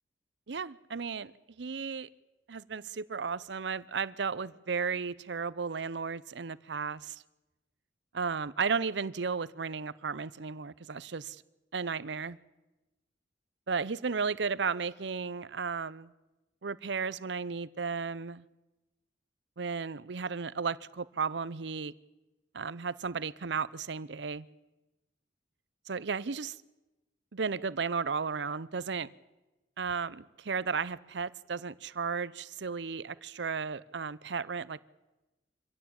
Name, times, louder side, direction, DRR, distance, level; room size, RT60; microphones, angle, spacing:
voice 1, 0.5-1.3 1.6-2.1 2.5-7.2 8.1-11.4 11.7-12.4 13.7-16.1 16.6-18.4 19.6-21.9 22.5-24.5 25.9-26.6 27.3-29.1 29.8-34.8, right 5 dB, 70° right, 0.7 m, -34 dB
25.0 x 16.0 x 8.8 m
head